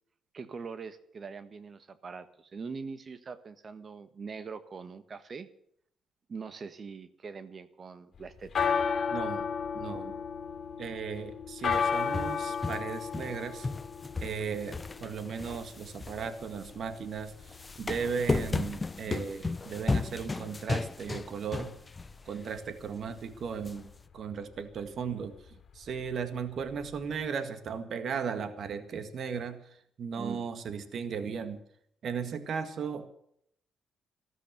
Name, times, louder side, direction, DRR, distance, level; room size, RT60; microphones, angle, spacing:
voice 1, 0.3-5.5 6.3-8.5 30.2-30.5, right 5 dB, 40° right, 13 dB, 1.5 m, -42 dB
sound 1, 8.2-27.2, left 6 dB, 50° left, 4.2 m, -36 dB
voice 2, 9.1-9.5 9.7-10.2 10.8-13.7 14.2-21.7 22.3-31.6 32.0-33.1, right 6 dB, 60° right, 10 dB, 1.9 m, -36 dB
sound 2, 11.7-13.4 13.6-16.8 17.4-22.1 22.5-22.6 23.6-23.7, left 3 dB, 25° left, 0.9 m, -34 dB
14.0 x 13.5 x 6.9 m, 0.68 s
cardioid pair, 90°, 0 cm